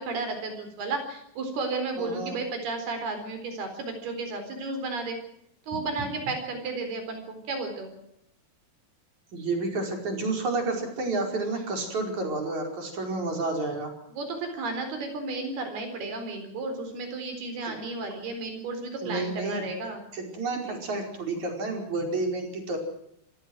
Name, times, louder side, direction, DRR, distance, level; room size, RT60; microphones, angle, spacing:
voice 1, 0.0-5.2 5.7-7.9 14.1-20.0, right 3 dB, 80° right, 6 dB, 6.2 m, -33 dB
voice 2, 2.0-2.4 9.3-13.9 17.7-17.8 19.0-19.6 20.1-22.8, right 3 dB, 50° right, 4 dB, 6.2 m, -30 dB
27.0 x 19.0 x 6.3 m, 0.74 s
omnidirectional pair, 4.4 m